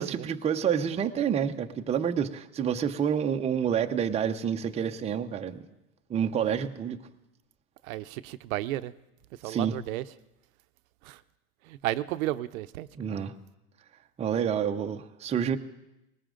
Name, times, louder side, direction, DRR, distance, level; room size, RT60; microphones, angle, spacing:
voice 1, 0.0-5.6 6.1-7.0 9.4-9.7 12.9-13.3 14.2-15.6, right 8 dB, 15° right, 5 dB, 0.7 m, -28 dB
voice 2, 7.8-8.9 9.4-10.0 11.0-11.2 11.6-12.9, right 15 dB, 65° right, 13 dB, 0.7 m, -33 dB
20.0 x 18.5 x 3.8 m, 0.93 s
hypercardioid pair, 115°, 45 cm